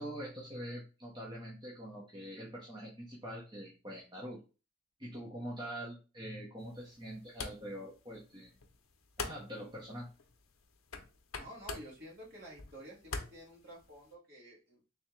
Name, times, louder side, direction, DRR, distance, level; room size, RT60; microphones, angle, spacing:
voice 1, 0.0-4.4 5.0-8.5 9.2-10.1, equal, 20° right, -4 dB, 0.8 m, -44 dB
sound 1, 6.6-14.1, left 4 dB, 75° left, 0.6 m, -47 dB
voice 2, 11.4-14.9, right 1 dB, 50° right, -4 dB, 1.9 m, -51 dB
3.5 x 3.3 x 3.1 m, 0.32 s
head